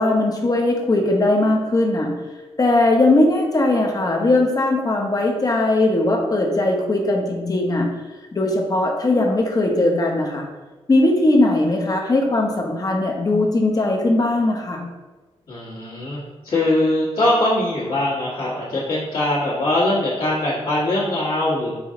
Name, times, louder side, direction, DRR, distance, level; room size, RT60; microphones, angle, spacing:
voice 1, 0.0-2.1 2.6-7.9 8.3-10.4 10.9-14.8, left 2 dB, 35° left, 1 dB, 0.9 m, -19 dB
voice 2, 15.5-21.7, left 1 dB, 60° left, -10 dB, 1.5 m, -22 dB
4.9 x 2.7 x 3.7 m, 1.2 s
cardioid pair, 90°, 11 cm